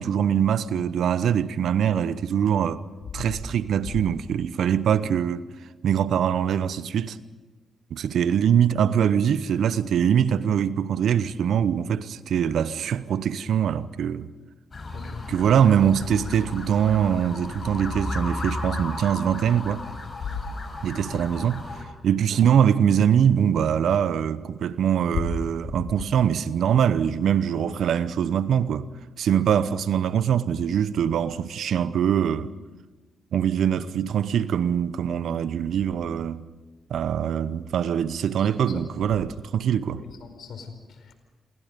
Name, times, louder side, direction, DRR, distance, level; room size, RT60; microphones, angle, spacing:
voice 1, 0.0-2.8 3.1-5.5 5.8-7.2 7.9-14.3 15.3-19.8 20.8-21.7 22.0-28.9 29.2-32.5 33.3-36.4 36.9-40.0, right 8 dB, 70° right, 0.9 m, -23 dB
sound 1, 14.7-21.8, left 2 dB, 45° left, 6.7 m, -34 dB
voice 2, 14.9-15.3 20.2-20.4 38.4-38.9 40.0-41.1, left 6 dB, 70° left, 4.5 m, -38 dB
28.5 x 22.5 x 5.3 m
hypercardioid pair, 40°, 0 cm